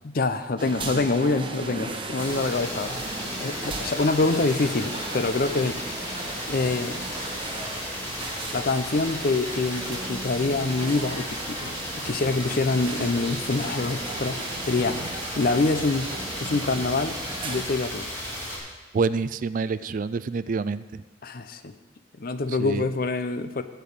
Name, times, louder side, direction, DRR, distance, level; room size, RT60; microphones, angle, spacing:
voice 1, 0.0-3.0 3.4-5.8 6.5-7.0 8.5-14.4 14.7-15.0 15.4-16.1 16.4-17.2 17.4-18.1 21.2-21.7 22.2-23.6, left 3 dB, 50° left, 10 dB, 0.6 m, -25 dB
sound 1, 0.6-17.6, right 2 dB, 25° right, 1.0 m, -36 dB
sound 2, 2.2-18.6, equal, 15° left, 3.5 m, -35 dB
voice 2, 18.9-21.0 22.6-22.8, right 4 dB, 45° right, 15 dB, 0.3 m, -27 dB
13.0 x 4.5 x 8.5 m, 1.2 s
head